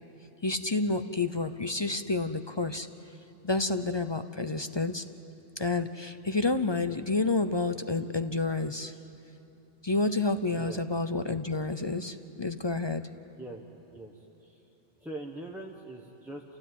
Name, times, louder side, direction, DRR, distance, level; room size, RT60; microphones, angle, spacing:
voice 1, 0.4-2.9 3.4-5.0 5.6-8.9 9.8-13.0, left 3 dB, 30° left, 10 dB, 0.5 m, -29 dB
voice 2, 13.9-14.6 15.0-16.4, right 1 dB, ahead, -2 dB, 1.3 m, -42 dB
28.5 x 16.5 x 9.4 m, 3.0 s
omnidirectional pair, 1.3 m